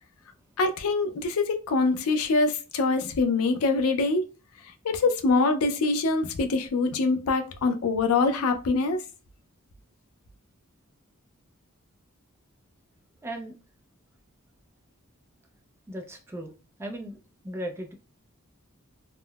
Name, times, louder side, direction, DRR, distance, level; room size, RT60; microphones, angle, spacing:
voice 1, 0.6-4.3 4.8-9.0, left 3 dB, 80° left, 0.4 m, -24 dB
voice 2, 13.2-13.5 15.9-16.5 16.8-17.9, right 1 dB, 10° right, 0.4 m, -37 dB
3.5 x 2.0 x 2.2 m
head